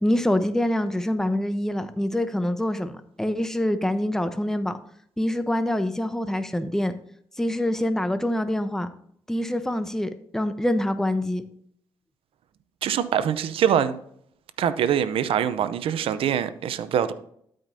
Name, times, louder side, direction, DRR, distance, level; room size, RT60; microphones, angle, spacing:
voice 1, 0.0-4.8 5.2-7.0 7.4-8.9 9.3-11.4, left 1 dB, 5° left, 10 dB, 0.8 m, -25 dB
voice 2, 12.8-14.0 14.6-17.1, right 9 dB, 75° right, 13 dB, 0.6 m, -24 dB
12.5 x 5.1 x 2.7 m, 0.66 s
supercardioid pair, 45°, 10 cm